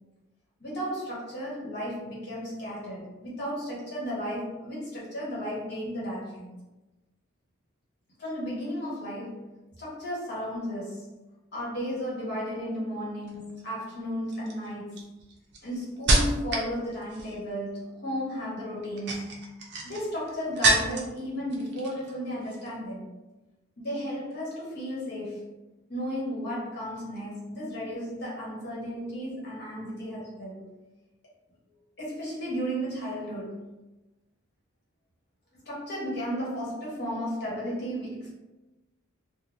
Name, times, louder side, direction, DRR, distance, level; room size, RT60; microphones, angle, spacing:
voice 1, 0.6-6.5 8.2-9.5 9.8-11.1 11.5-15.1 15.6-19.4 19.8-23.1 23.8-25.5 25.9-30.7 32.0-33.6 35.6-38.3, equal, 50° left, -6 dB, 1.1 m, -34 dB
sound 1, 13.2-13.6 14.3-16.7 17.0-17.5 18.8-21.2 21.5-22.2 22.4-22.7, right 2 dB, 50° right, 0.5 m, -28 dB
3.2 x 2.2 x 2.6 m, 1.1 s
head